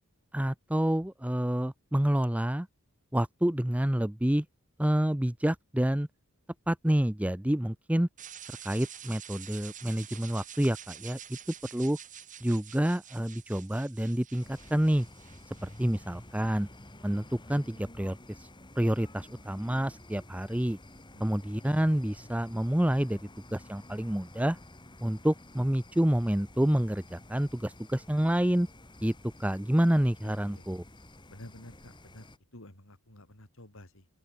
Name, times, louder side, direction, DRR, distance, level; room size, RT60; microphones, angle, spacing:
voice 1, 0.3-2.7 3.1-4.5 4.8-6.1 6.7-8.1 8.5-11.4 11.7-12.0 12.4-15.1 15.6-16.7 17.0-18.5 18.8-20.8 21.2-23.2 23.5-24.6 25.0-28.7 29.0-29.1 29.4-30.8, right 1 dB, 5° right, 0.6 m, -28 dB
sound 1, 8.2-16.2, right 9 dB, 35° right, 4.8 m, -48 dB
sound 2, 14.4-32.4, left 1 dB, 20° left, 3.5 m, -51 dB
voice 2, 30.2-30.6 31.3-34.1, left 1 dB, 65° left, 4.5 m, -51 dB
open air
head